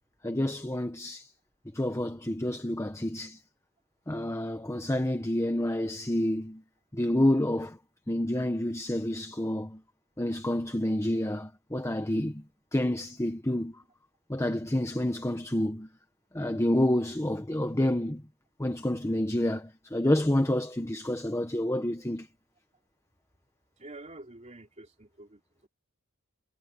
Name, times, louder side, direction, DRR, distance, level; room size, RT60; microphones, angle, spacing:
voice 1, 0.2-1.3 1.7-3.4 4.1-6.6 6.9-7.8 8.1-9.8 10.2-12.4 12.7-13.8 14.3-15.9 16.3-18.2 18.6-22.3, left 1 dB, 15° left, 1.2 m, -28 dB
voice 2, 23.8-25.4, right 2 dB, 30° right, 3.2 m, -47 dB
head